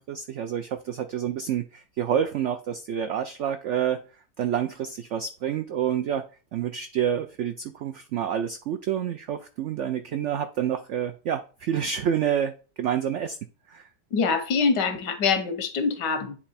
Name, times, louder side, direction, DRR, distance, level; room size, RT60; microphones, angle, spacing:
voice 1, 0.0-4.0 4.4-13.4 13.7-13.9, right 9 dB, 85° right, 0.6 m, -28 dB
voice 2, 14.1-16.4, left 5 dB, 85° left, 1.6 m, -24 dB
8.7 x 3.4 x 4.1 m
omnidirectional pair, 1.8 m